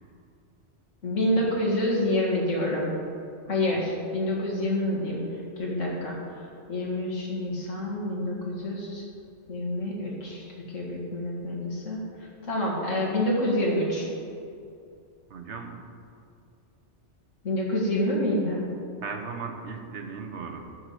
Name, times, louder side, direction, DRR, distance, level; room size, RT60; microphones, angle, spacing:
voice 1, 1.0-2.9 3.5-5.2 5.6-6.2 6.7-9.0 9.5-12.0 12.5-14.1 17.4-18.7, left 1 dB, 85° left, -4 dB, 2.4 m, -27 dB
voice 2, 3.5-3.9 15.3-15.8 19.0-20.7, right 5 dB, 70° right, 4 dB, 1.3 m, -37 dB
12.5 x 4.9 x 7.9 m, 2.5 s
omnidirectional pair, 1.2 m